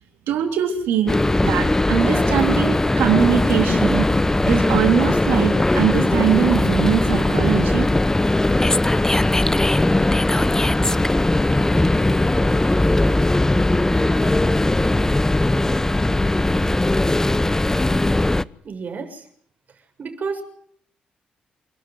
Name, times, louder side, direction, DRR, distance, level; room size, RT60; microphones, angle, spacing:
voice 1, 0.3-1.2 1.4-4.1 4.5-7.9, right 9 dB, 80° right, 5 dB, 3.8 m, -21 dB
sound 1, 1.1-18.4, left 2 dB, 15° left, 0.9 m, -19 dB
voice 2, 18.6-19.3 20.0-20.4, right 5 dB, 55° right, 4 dB, 7.0 m, -30 dB
28.5 x 12.5 x 9.6 m, 0.64 s
supercardioid pair, 50°, 3 cm